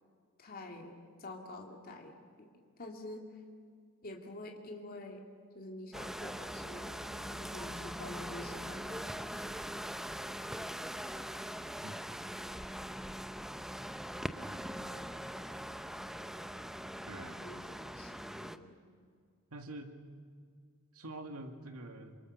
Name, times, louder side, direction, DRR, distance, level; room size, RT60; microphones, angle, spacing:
voice 1, 0.4-2.5 2.8-3.4 4.0-5.2 5.5-9.4 17.3-18.8, left 2 dB, 45° left, 1 dB, 2.6 m, -47 dB
sound 1, 5.9-18.6, equal, ahead, 0.7 m, -42 dB
voice 2, 14.2-15.2 17.1-17.4 19.5-19.9 20.9-22.2, right 2 dB, 90° right, 5 dB, 2.3 m, -47 dB
27.0 x 24.5 x 6.8 m, 2.1 s
head